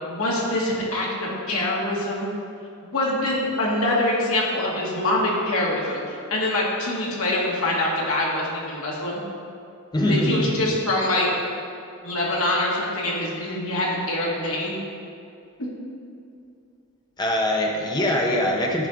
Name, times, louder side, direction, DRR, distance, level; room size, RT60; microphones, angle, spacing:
voice 1, 0.1-2.3 2.8-6.0 6.3-9.2 10.1-11.3 12.0-14.8, left 1 dB, 70° left, -4 dB, 1.9 m, -24 dB
voice 2, 9.9-10.7 17.2-18.9, left 1 dB, 20° left, -1 dB, 0.9 m, -23 dB
11.0 x 4.3 x 5.1 m, 2.5 s
head